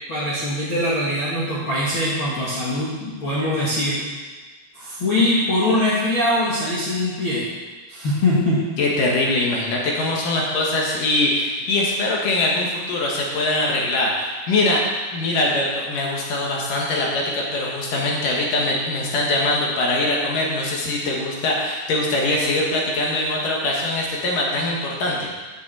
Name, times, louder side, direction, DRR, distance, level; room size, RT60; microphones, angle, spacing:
voice 1, 0.1-4.0 4.7-7.5 7.9-8.6, left 1 dB, 45° left, -9 dB, 1.9 m, -22 dB
voice 2, 8.8-14.8 15.1-25.3, left 2 dB, 60° left, -2 dB, 2.9 m, -22 dB
7.9 x 7.4 x 7.6 m, 1.3 s
omnidirectional pair, 4.7 m